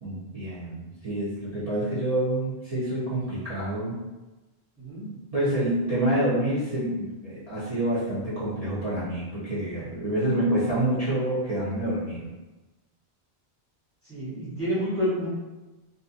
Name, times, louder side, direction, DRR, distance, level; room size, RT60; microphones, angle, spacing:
voice 1, 0.0-4.0 5.3-12.3, right 1 dB, 40° right, -11 dB, 0.8 m, -27 dB
voice 2, 14.0-15.3, equal, 15° left, -11 dB, 0.9 m, -28 dB
2.6 x 2.5 x 2.4 m, 1.1 s
omnidirectional pair, 1.1 m